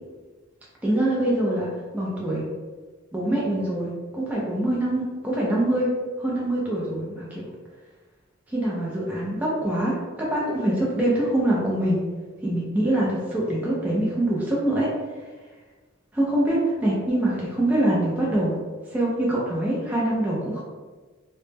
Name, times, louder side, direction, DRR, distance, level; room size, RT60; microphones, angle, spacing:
voice 1, 0.8-1.7 1.9-2.4 3.1-5.9 6.2-7.5 8.5-12.0 12.4-14.9 15.2-15.3 16.1-18.6 18.9-20.6, right 1 dB, 10° right, -6 dB, 0.3 m, -24 dB
2.0 x 2.0 x 3.2 m, 1.4 s
head